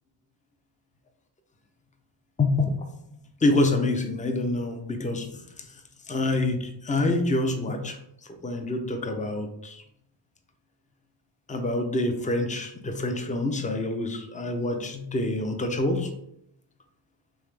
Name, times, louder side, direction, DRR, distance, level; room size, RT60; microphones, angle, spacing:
voice 1, 2.4-2.8 3.4-5.4 6.1-8.0 8.4-9.8 11.5-16.1, left 2 dB, 15° left, 5 dB, 0.5 m, -26 dB
3.6 x 3.3 x 3.2 m, 0.75 s
wide cardioid pair, 95°, 44 cm